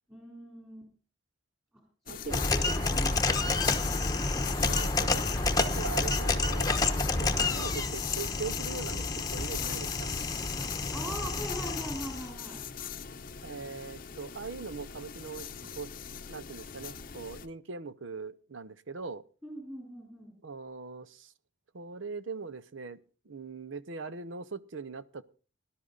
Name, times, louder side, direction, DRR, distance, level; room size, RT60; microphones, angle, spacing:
voice 1, 0.1-0.9 1.7-1.8 2.1-3.1 3.6-4.3 4.6-4.7 10.9-12.6 19.4-20.3, equal, 10° right, -1 dB, 3.8 m, -41 dB
sound 1, 2.1-17.5, left 8 dB, 45° left, 0.7 m, -41 dB
voice 2, 2.1-2.6 4.6-6.7 7.2-9.1 9.3-10.1 13.4-15.5 15.8-15.9 16.3-19.2 20.4-21.3 21.7-23.0 23.3-25.2, right 4 dB, 70° right, 13 dB, 0.7 m, -41 dB
sound 2, 2.3-12.3, left 3 dB, 20° left, 0.9 m, -29 dB
18.5 x 11.5 x 3.9 m, 0.37 s
head